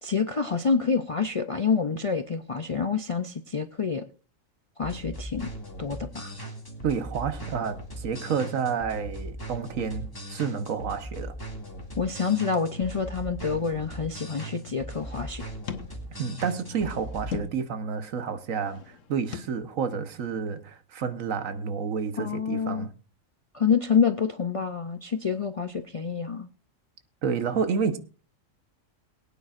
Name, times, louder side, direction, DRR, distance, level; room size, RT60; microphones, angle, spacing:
voice 1, 0.0-4.0 4.8-5.5 5.8-6.3 12.0-15.5 22.2-22.9 23.5-26.5, left 6 dB, 50° left, 0.4 m, -27 dB
sound 1, 4.8-17.4, right 1 dB, 15° left, 2.2 m, -39 dB
voice 2, 6.8-11.4 16.2-22.9 27.2-28.0, right 6 dB, 80° right, 1.4 m, -30 dB
sound 2, 12.5-13.9 14.7-16.1 16.5-17.7 18.3-19.4, left 7 dB, 75° left, 1.4 m, -42 dB
22.5 x 9.1 x 2.5 m
omnidirectional pair, 1.3 m